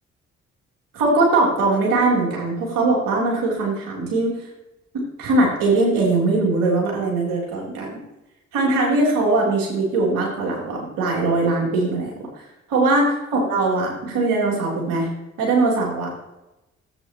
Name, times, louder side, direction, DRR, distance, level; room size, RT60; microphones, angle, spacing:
voice 1, 0.9-4.4 5.2-8.0 8.5-12.1 12.7-15.1 15.4-16.1, right 2 dB, 70° right, -2 dB, 3.3 m, -20 dB
13.0 x 7.9 x 2.9 m, 0.96 s
hypercardioid pair, 40°, 34 cm